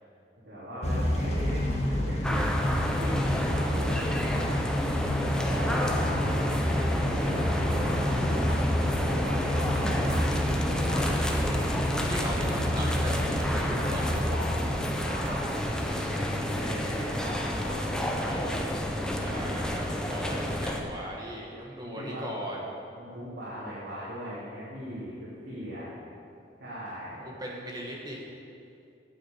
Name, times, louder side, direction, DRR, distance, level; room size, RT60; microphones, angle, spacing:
voice 1, 0.4-2.5 2.8-4.6 5.2-6.4 6.7-8.6 9.0-10.4 10.7-11.4 13.7-14.7 15.0-18.6 19.3-19.6 20.3-20.6 21.8-22.5 22.9-25.9 26.6-27.2, equal, 80° right, -10 dB, 2.9 m, -39 dB
Motor vehicle (road) / Engine starting / Accelerating revving vroom, 0.8-15.8, left 1 dB, 40° left, 1.5 m, -29 dB
sound 1, 2.2-20.8, equal, 5° left, 0.8 m, -30 dB
voice 2, 12.1-14.2 18.2-18.5 19.2-22.7 27.2-28.2, equal, 25° right, -3 dB, 1.8 m, -37 dB
9.2 x 7.7 x 7.3 m, 2.5 s
head